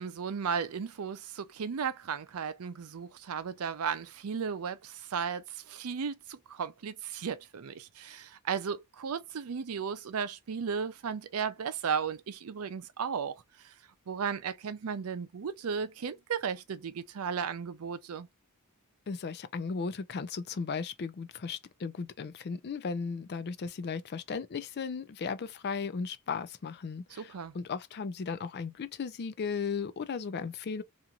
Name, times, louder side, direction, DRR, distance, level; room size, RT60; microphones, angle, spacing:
voice 1, 0.0-13.7 14.1-18.3 27.2-27.5, right 6 dB, 75° right, 0.5 m, -35 dB
voice 2, 19.1-30.8, left 5 dB, 50° left, 0.4 m, -36 dB
2.9 x 2.5 x 2.3 m
head